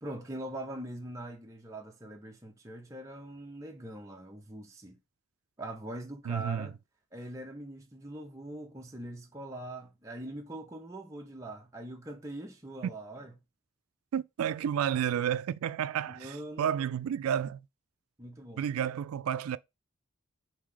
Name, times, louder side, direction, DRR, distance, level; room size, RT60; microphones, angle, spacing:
voice 1, 0.0-5.0 5.6-6.8 7.1-13.3 16.1-16.8 18.2-18.6, right 1 dB, 15° right, 0.5 m, -42 dB
voice 2, 6.3-6.7 14.1-17.6 18.6-19.6, right 9 dB, 85° right, 0.3 m, -31 dB
4.8 x 2.7 x 3.7 m
head